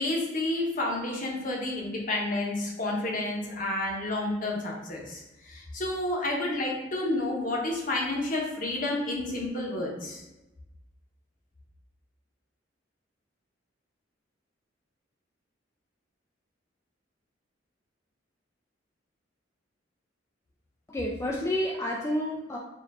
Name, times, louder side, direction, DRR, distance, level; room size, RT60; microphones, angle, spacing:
voice 1, 0.0-10.2, left 2 dB, 45° left, -1 dB, 0.9 m, -30 dB
voice 2, 20.9-22.6, left 1 dB, 15° left, -3 dB, 0.3 m, -29 dB
4.5 x 2.5 x 3.5 m, 1.0 s
head